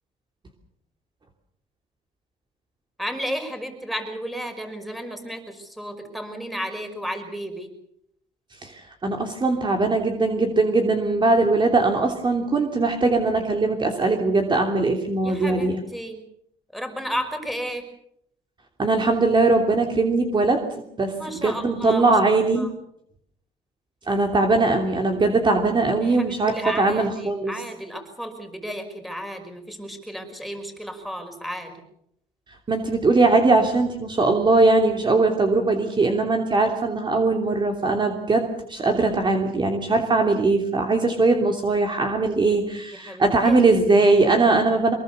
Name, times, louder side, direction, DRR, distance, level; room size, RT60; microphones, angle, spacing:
voice 1, 3.0-7.7 15.2-16.2 16.7-17.8 21.2-22.7 26.0-31.8 42.9-43.6, equal, ahead, 6 dB, 5.5 m, -33 dB
voice 2, 8.6-15.8 18.8-21.1 21.4-22.7 24.1-27.5 32.7-44.9, right 3 dB, 25° right, 3 dB, 3.1 m, -20 dB
24.5 x 22.0 x 6.9 m, 0.75 s
cardioid pair, 110°, 17 cm